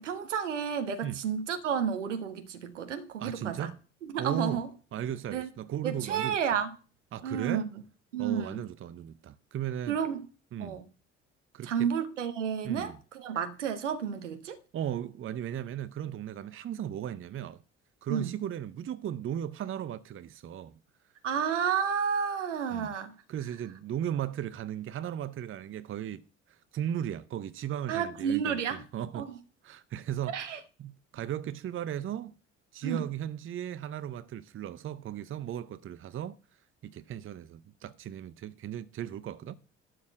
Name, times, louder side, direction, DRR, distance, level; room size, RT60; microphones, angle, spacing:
voice 1, 0.0-3.7 4.0-4.7 5.3-5.5 5.8-6.7 7.2-7.7 8.1-8.6 9.9-10.2 10.6-10.9 11.6-14.6 18.1-18.3 21.2-23.1 27.9-28.8 29.1-29.4 30.3-30.6 32.8-33.0, right 7 dB, 80° right, 1.2 m, -31 dB
voice 2, 3.2-3.8 4.2-4.6 4.9-6.4 7.1-7.7 8.2-10.0 10.5-10.8 11.5-11.9 12.6-13.0 14.7-17.6 18.0-20.8 22.7-22.9 23.3-26.2 26.7-29.3 29.6-32.3 32.7-36.4 36.8-39.6, right 10 dB, 35° right, 0.7 m, -36 dB
12.0 x 4.3 x 7.9 m
figure-of-eight pair, 50°, 36 cm